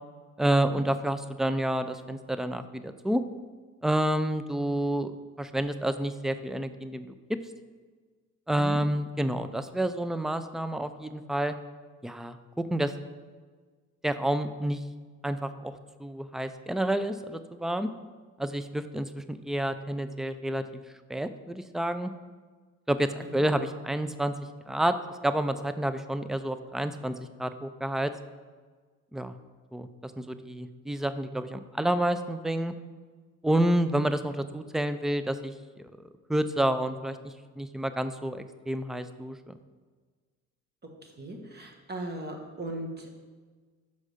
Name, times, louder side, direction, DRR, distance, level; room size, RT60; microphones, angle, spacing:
voice 1, 0.4-3.2 3.8-7.1 8.5-11.6 12.0-12.9 14.0-14.8 15.2-15.7 16.0-17.9 18.4-20.6 21.1-22.1 22.9-24.3 24.7-25.0 25.2-28.1 29.1-29.3 29.7-32.7 33.4-35.9 36.3-39.4, right 1 dB, ahead, 11 dB, 0.3 m, -29 dB
voice 2, 41.0-43.1, right 1 dB, 35° right, 3 dB, 1.3 m, -38 dB
5.5 x 4.8 x 6.4 m, 1.5 s
cardioid pair, 90°, 30 cm